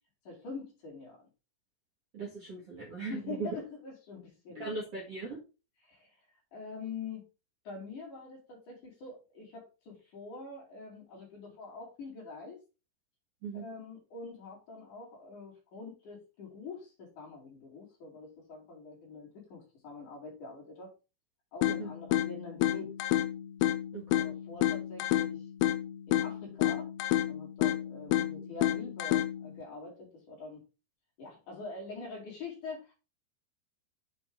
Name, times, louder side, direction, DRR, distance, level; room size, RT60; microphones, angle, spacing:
voice 1, 0.3-1.3 3.0-4.8 5.8-6.2 6.5-7.2 7.6-12.6 13.5-20.9 21.5-22.9 24.1-25.5 26.1-26.9 27.3-30.6 31.2-32.9, left 4 dB, 45° left, -2 dB, 3.6 m, -45 dB
voice 2, 2.1-3.5 4.6-5.4 13.4-13.6 21.8-21.9 23.9-24.3, right 4 dB, 60° right, -2 dB, 1.5 m, -39 dB
sound 1, 21.6-29.6, left 13 dB, 80° left, 2.4 m, -30 dB
7.5 x 5.1 x 3.7 m, 0.30 s
omnidirectional pair, 5.7 m